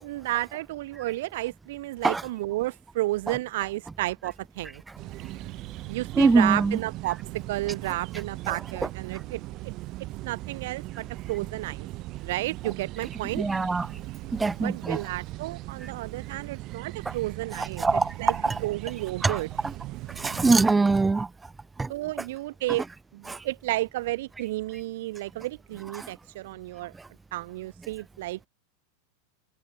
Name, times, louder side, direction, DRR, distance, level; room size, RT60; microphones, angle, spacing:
voice 1, 0.0-4.8 5.9-9.7 10.2-11.9 12.2-13.4 14.6-18.3 18.6-19.5 21.9-22.8 23.1-26.9 27.3-28.5, right 17 dB, 70° right, 4.0 m, -32 dB
sound 1, 5.0-20.7, right 19 dB, 45° right, 1.2 m, -39 dB
voice 2, 6.2-6.8 8.5-8.6 13.3-14.0 14.3-15.0 17.1-17.2 17.6-18.6 19.2-19.7 20.2-21.3 21.8-21.9 23.3-23.4 25.9-26.1 27.0-27.1, right 3 dB, 10° right, 0.4 m, -24 dB
supercardioid pair, 125°, 0 cm